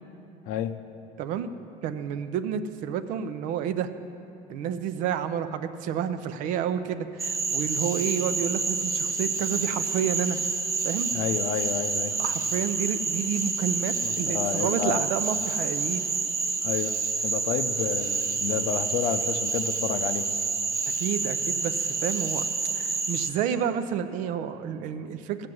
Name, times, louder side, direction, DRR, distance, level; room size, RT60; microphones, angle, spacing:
voice 1, 1.2-1.5 1.8-3.9 4.5-10.4 10.8-11.1 12.2-16.1 21.0-22.5 22.7-25.5, right 8 dB, 65° right, 10 dB, 0.7 m, -30 dB
Cricket / Frog, 7.2-23.3, right 4 dB, 20° right, 0.9 m, -28 dB
voice 2, 11.1-12.2 14.0-15.1 16.6-20.3, left 9 dB, 70° left, 10 dB, 0.7 m, -30 dB
16.0 x 6.0 x 7.8 m, 2.8 s
cardioid pair, 135°, 14 cm